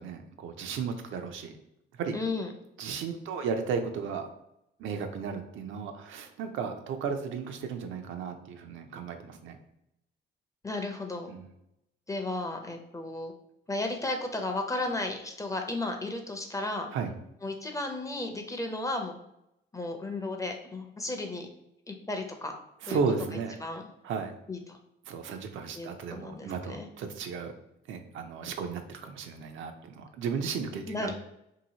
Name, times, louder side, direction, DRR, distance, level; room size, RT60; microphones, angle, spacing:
voice 1, 0.0-1.6 2.0-2.2 2.8-4.3 4.8-9.6 11.3-11.5 16.9-17.1 22.8-23.6 24.0-24.3 25.0-27.5 27.9-31.1, right 5 dB, 75° right, 5 dB, 0.5 m, -34 dB
voice 2, 2.1-2.5 10.6-11.3 12.1-13.3 13.7-16.9 17.4-19.2 19.7-21.5 21.9-22.6 22.9-23.0 23.6-23.8 24.5-24.8 25.7-26.9 30.9-31.1, left 2 dB, 15° left, 4 dB, 0.5 m, -34 dB
2.8 x 2.6 x 2.8 m, 0.83 s
cardioid pair, 90°, 20 cm